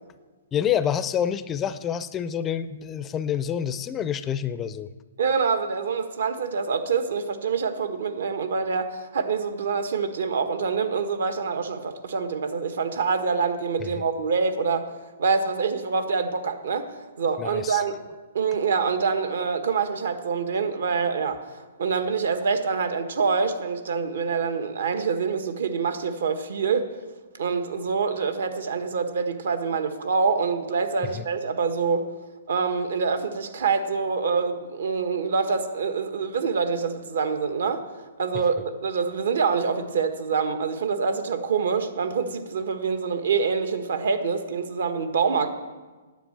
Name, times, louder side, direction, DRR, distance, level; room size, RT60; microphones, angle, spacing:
voice 1, 0.5-4.9 13.8-13.9 17.4-17.8 31.2-31.3, left 9 dB, 15° left, 13 dB, 0.4 m, -27 dB
voice 2, 5.2-14.9 15.2-16.9 17.2-18.0 18.3-21.4 21.8-26.9 27.4-32.0 32.5-37.8 38.2-45.5, right 5 dB, 70° right, 8 dB, 1.4 m, -25 dB
9.8 x 7.8 x 8.7 m, 1.3 s
hypercardioid pair, 155°, 0 cm